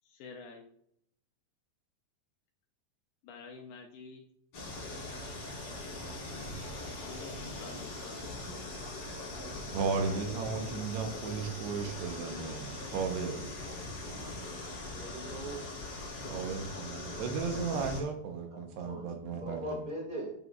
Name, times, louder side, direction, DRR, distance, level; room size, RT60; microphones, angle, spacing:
voice 1, 0.0-0.7 3.2-4.3 7.0-8.3, left 4 dB, 75° left, 3 dB, 2.2 m, -48 dB
sound 1, 4.5-18.0, left 2 dB, 40° left, 3.2 m, -41 dB
voice 2, 9.7-13.4 16.3-19.9, right 5 dB, 80° right, 4 dB, 3.1 m, -35 dB
voice 3, 15.0-15.6 18.8-20.3, right 1 dB, 45° right, -2 dB, 0.6 m, -40 dB
9.5 x 8.9 x 2.5 m, 0.71 s
omnidirectional pair, 4.8 m